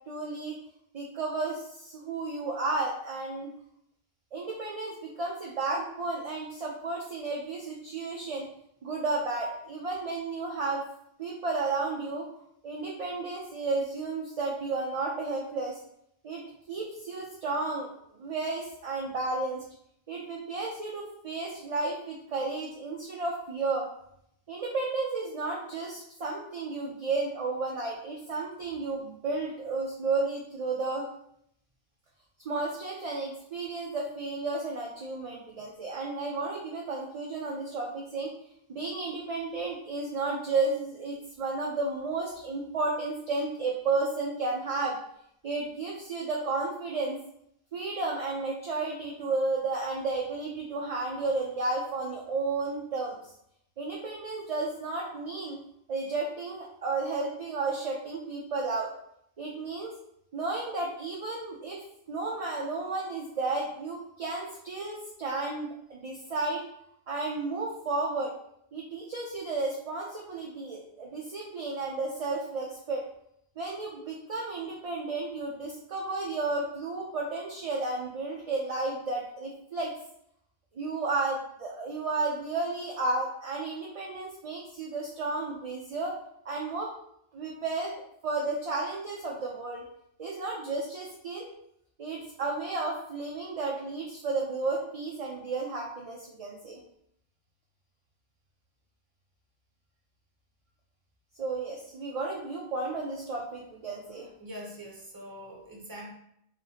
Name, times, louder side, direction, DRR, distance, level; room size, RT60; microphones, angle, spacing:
voice 1, 0.1-0.6 0.9-3.5 4.3-8.5 8.8-10.8 11.2-12.3 12.6-15.8 16.2-16.4 16.7-17.9 18.2-19.6 20.1-23.9 24.5-31.1 32.4-38.3 38.7-45.0 45.4-47.2 47.7-53.2 53.8-55.6 55.9-58.9 59.4-59.9 60.3-61.8 62.1-66.6 67.1-68.4 68.7-73.1 73.6-79.9 80.7-86.1 86.4-86.9 87.3-87.9 88.2-89.8 90.2-91.5 92.0-96.8 101.4-104.3, right 3 dB, 45° right, -2 dB, 0.5 m, -32 dB
voice 2, 104.4-106.1, equal, 20° right, -1 dB, 0.8 m, -43 dB
3.9 x 3.6 x 2.8 m, 0.72 s
omnidirectional pair, 1.0 m